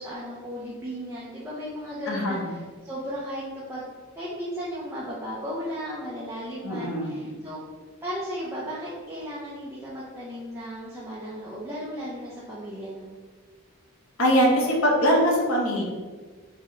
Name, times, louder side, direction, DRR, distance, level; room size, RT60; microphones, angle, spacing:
voice 1, 0.0-3.4 3.7-3.9 4.2-7.6 8.0-13.1, equal, 10° right, -8 dB, 0.6 m, -35 dB
voice 2, 2.1-2.5 6.6-7.4 14.2-15.8, equal, 65° left, -3 dB, 0.9 m, -22 dB
4.8 x 2.2 x 3.0 m, 1.4 s
head